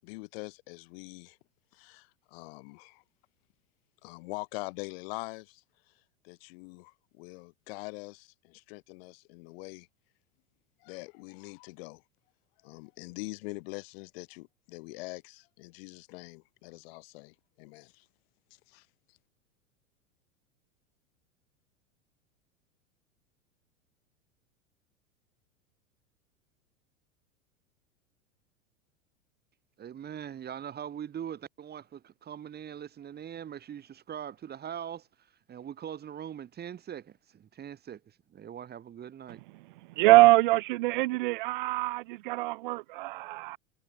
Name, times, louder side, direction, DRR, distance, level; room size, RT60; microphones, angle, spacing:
voice 1, 0.0-1.4 1.7-3.0 4.0-5.6 6.2-9.9 10.8-12.0 12.6-18.0 18.7-18.8, left 27 dB, 50° left, 5.0 m, -43 dB
voice 2, 29.8-35.1 35.5-39.4, right 9 dB, 25° right, 4.4 m, -41 dB
voice 3, 40.0-43.6, right 20 dB, 40° right, 0.5 m, -23 dB
figure-of-eight pair, 90°, 39 cm